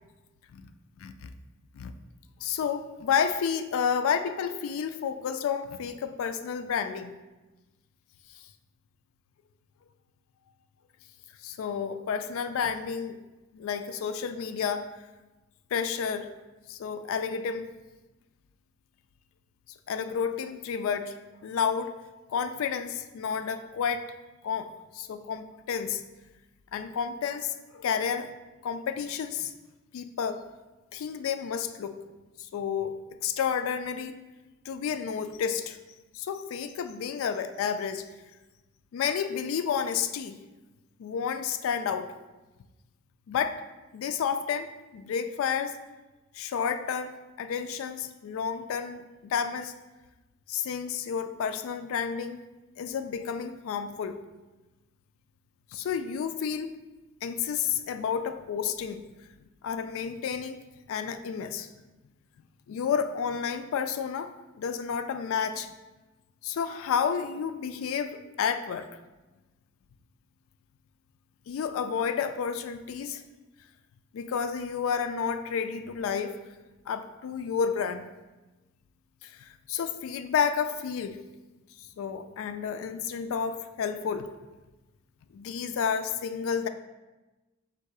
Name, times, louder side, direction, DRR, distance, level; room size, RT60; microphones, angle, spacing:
voice 1, 1.0-1.3 1.7-1.9 2.4-7.1 11.4-13.2 13.5-14.9 15.7-16.3 16.7-17.7 19.9-21.1 21.4-22.0 22.3-24.0 24.4-26.0 26.7-28.3 28.6-29.5 29.9-30.4 30.9-32.0 32.5-34.1 34.7-35.8 36.1-38.1 38.9-40.4 41.0-42.1 43.3-43.6 43.9-45.8 46.3-47.1 47.4-49.7 50.5-52.4 52.8-54.2 55.7-56.7 57.2-59.0 59.6-60.6 60.9-61.7 62.7-65.7 66.4-68.9 71.5-73.2 74.1-76.4 76.9-78.1 79.2-81.2 81.8-84.3 85.3-86.7, left 7 dB, 70° left, 10 dB, 0.3 m, -31 dB
3.7 x 2.7 x 4.6 m, 1.1 s
head